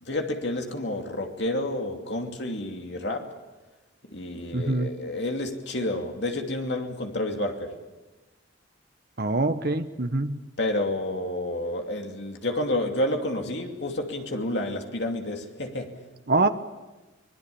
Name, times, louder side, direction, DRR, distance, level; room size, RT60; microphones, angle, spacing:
voice 1, 0.0-3.3 4.0-7.8 10.6-16.0, left 1 dB, 60° left, 2.6 m, -30 dB
voice 2, 4.5-4.9 9.2-10.4 16.3-16.5, right 2 dB, 50° right, 1.3 m, -24 dB
25.0 x 21.5 x 7.1 m
head